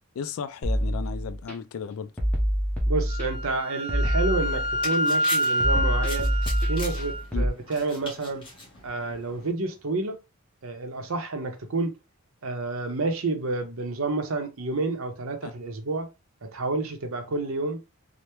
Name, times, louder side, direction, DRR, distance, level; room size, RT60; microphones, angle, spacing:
voice 1, 0.2-2.1 7.3-7.5 15.4-15.5, left 6 dB, 70° left, 0.3 m, -34 dB
sound 1, 0.6-1.5 2.2-3.5 3.9-5.0 5.6-7.5, equal, 5° left, 0.7 m, -26 dB
voice 2, 2.9-6.3 6.7-8.4 8.8-10.2 10.6-12.0 12.4-16.1 16.5-17.8, right 3 dB, 70° right, 0.7 m, -29 dB
Wind instrument woodwind instrument, 3.1-7.3, equal, 20° right, 0.3 m, -28 dB
sound 2, 4.3-9.5, left 2 dB, 20° left, 1.1 m, -41 dB
3.3 x 2.1 x 2.9 m
head